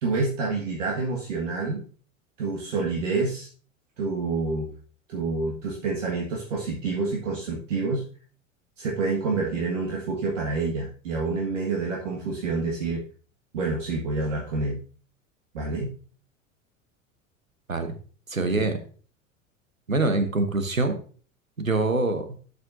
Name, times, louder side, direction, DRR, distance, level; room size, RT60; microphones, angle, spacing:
voice 1, 0.0-1.8 2.4-3.5 4.0-4.7 5.1-8.0 8.8-13.0 13.5-14.8 15.5-15.9 18.5-18.7, right 3 dB, 65° right, -2 dB, 1.8 m, -28 dB
voice 2, 18.3-18.8 19.9-21.0 21.6-22.4, right 2 dB, 90° right, 9 dB, 1.1 m, -24 dB
12.0 x 6.5 x 2.6 m, 0.42 s
figure-of-eight pair, 80°, 40 cm